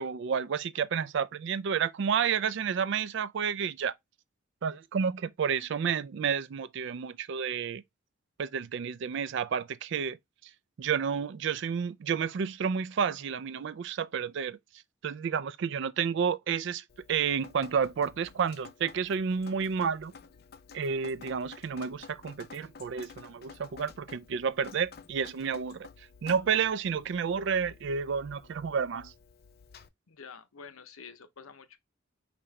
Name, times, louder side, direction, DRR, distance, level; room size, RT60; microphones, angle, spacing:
voice 1, 0.0-3.9 4.6-7.8 8.4-10.2 10.8-14.6 15.0-20.1 20.7-25.9 26.2-29.1, right 6 dB, 55° right, 0.3 m, -30 dB
Drip, 16.9-29.9, left 5 dB, 45° left, 0.4 m, -52 dB
voice 2, 30.1-31.8, left 6 dB, 85° left, 0.7 m, -48 dB
5.0 x 2.9 x 3.2 m
head